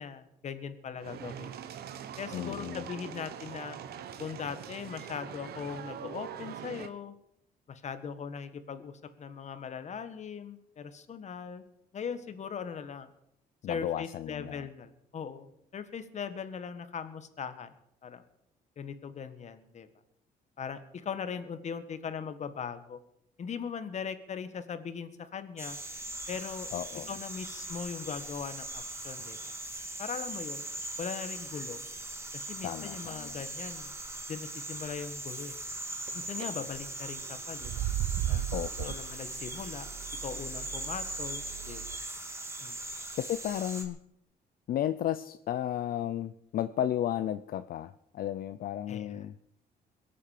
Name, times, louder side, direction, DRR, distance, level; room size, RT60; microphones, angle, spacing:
voice 1, 0.0-1.7 2.2-3.8 4.2-7.1 7.7-11.6 11.9-13.1 13.7-17.7 18.0-18.2 18.8-19.9 20.6-23.0 23.4-25.8 26.3-26.7 27.1-29.5 30.0-30.7 31.0-31.8 32.3-33.9 34.3-35.6 36.1-37.8 38.3-38.4 38.8-39.8 40.2-41.8 42.6-42.8 48.9-49.3, left 6 dB, 45° left, 11 dB, 1.6 m, -40 dB
sound 1, 1.0-6.9, right 9 dB, 75° right, 1.3 m, -43 dB
voice 2, 2.3-2.8 13.6-14.7 26.7-27.1 32.6-33.4 38.5-38.9 43.2-44.0 44.7-49.3, left 11 dB, 60° left, 13 dB, 0.6 m, -33 dB
sound 2, 25.6-43.8, right 2 dB, 15° right, 2.6 m, -40 dB
sound 3, 36.1-36.4 37.5-42.0, right 12 dB, 90° right, 0.7 m, -36 dB
22.0 x 8.6 x 6.6 m, 0.76 s
cardioid pair, 125°, 17 cm